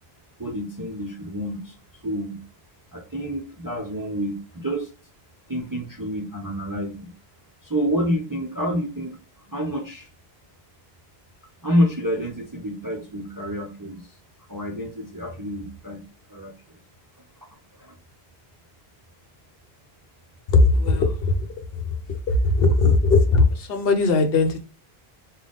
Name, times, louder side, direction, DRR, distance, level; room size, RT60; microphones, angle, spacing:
voice 1, 0.4-1.7 2.0-2.4 2.9-4.9 5.5-7.1 7.6-9.2 9.5-10.1 11.6-14.0 14.5-16.0 16.3-16.5 17.8-17.9, equal, 30° right, 0.4 m, -28 dB
voice 2, 20.5-21.5 21.7-24.6, left 3 dB, 70° left, 0.9 m, -19 dB
3.9 x 2.2 x 3.4 m
omnidirectional pair, 1.1 m